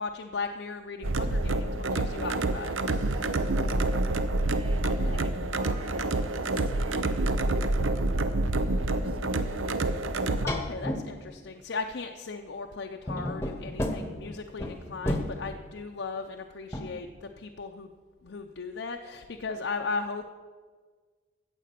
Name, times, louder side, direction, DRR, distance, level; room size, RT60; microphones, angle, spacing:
voice 1, 0.0-3.1 4.8-5.3 10.4-17.9 18.2-20.3, left 4 dB, 70° left, 3 dB, 0.6 m, -37 dB
sound 1, 1.0-10.5, right 2 dB, 85° right, 0.7 m, -27 dB
voice 2, 3.1-8.0 8.5-10.0, right 1 dB, 25° right, 4 dB, 1.3 m, -48 dB
sound 2, 10.1-10.2 10.5-11.1 13.1-15.4 16.7-16.9, left 1 dB, 15° left, 0.9 m, -31 dB
14.5 x 7.9 x 5.9 m, 1.5 s
head